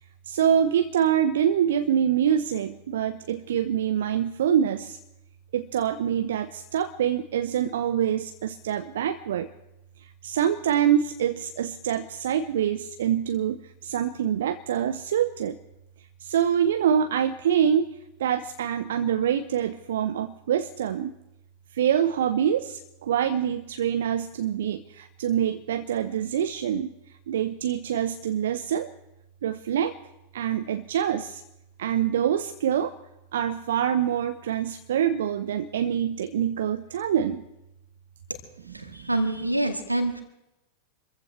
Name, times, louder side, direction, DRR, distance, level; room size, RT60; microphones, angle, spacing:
voice 1, 0.2-5.0 5.5-9.5 10.0-15.6 16.2-21.1 21.7-28.9 29.4-30.0 30.3-31.4 31.8-33.0 33.3-37.4 38.7-39.1, right 9 dB, 60° right, 10 dB, 0.7 m, -25 dB
voice 2, 38.7-40.2, right 1 dB, 85° right, 6 dB, 2.0 m, -26 dB
27.0 x 15.0 x 3.2 m, 0.90 s
figure-of-eight pair, 90°, 0 cm